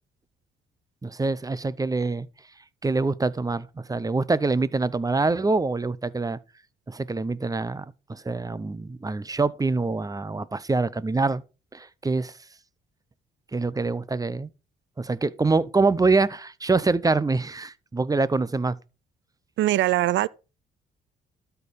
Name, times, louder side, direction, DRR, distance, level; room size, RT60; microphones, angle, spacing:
voice 1, 1.0-2.3 2.8-6.4 6.9-11.4 11.7-12.4 13.5-14.5 15.0-18.8, right 3 dB, 20° right, 0.7 m, -25 dB
voice 2, 19.6-20.3, right 14 dB, 70° right, 0.5 m, -21 dB
12.5 x 4.6 x 5.1 m
cardioid pair, 90°, 20 cm